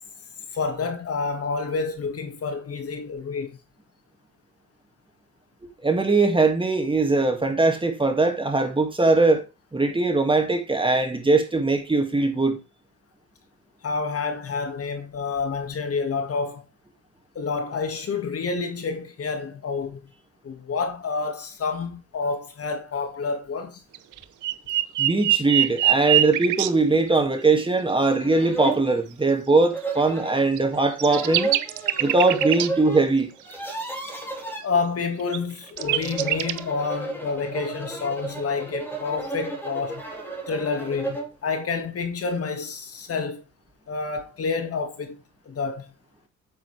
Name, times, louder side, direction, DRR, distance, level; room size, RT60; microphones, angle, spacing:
voice 1, 0.5-3.6 13.8-16.6 17.4-20.1 20.4-23.8 34.6-40.1 40.5-43.4 43.9-45.2 45.5-45.9, left 4 dB, 50° left, 2.0 m, -29 dB
voice 2, 5.8-9.4 9.7-12.6 25.0-31.5 32.0-33.3, right 3 dB, 15° right, 2.1 m, -21 dB
sound 1, 23.9-26.7 30.6-30.7 31.0-32.7 35.2-35.4 35.8-36.6, right 14 dB, 80° right, 0.8 m, -22 dB
sound 2, 26.6-26.7 27.2-27.3 27.9-28.0 28.2-28.9 29.7-30.5 31.0-33.0 33.3-34.6 35.6-41.3, right 3 dB, 5° left, 3.8 m, -32 dB
9.1 x 7.0 x 3.3 m
cardioid pair, 90°, 30 cm